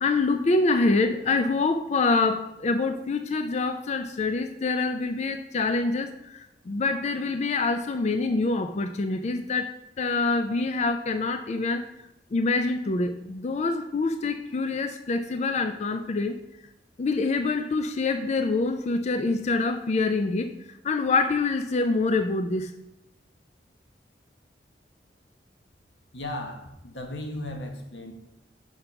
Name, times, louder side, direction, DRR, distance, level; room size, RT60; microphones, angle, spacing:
voice 1, 0.0-6.4 6.7-11.8 12.3-16.4 17.0-20.5 20.8-22.7, left 3 dB, 40° left, 8 dB, 0.4 m, -25 dB
voice 2, 26.1-28.1, left 1 dB, 90° left, 4 dB, 1.2 m, -36 dB
5.7 x 5.1 x 5.8 m, 0.89 s
head